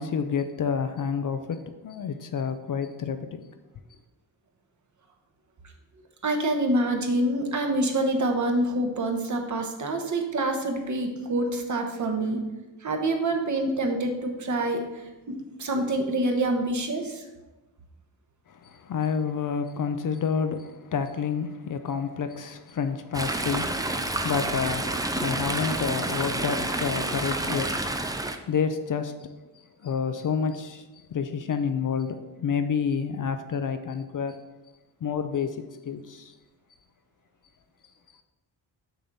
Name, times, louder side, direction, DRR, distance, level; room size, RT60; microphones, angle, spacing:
voice 1, 0.0-3.4 18.5-28.1 28.5-29.3 29.8-30.8 31.1-34.4 35.0-36.3, left 6 dB, 45° left, 0.5 m, -29 dB
voice 2, 6.2-12.4 12.8-17.2, right 1 dB, 40° right, 1.1 m, -26 dB
Chatter / Stream, 23.1-28.4, right 2 dB, 10° right, 0.4 m, -29 dB
6.8 x 6.0 x 4.0 m
cardioid pair, 120°, 44 cm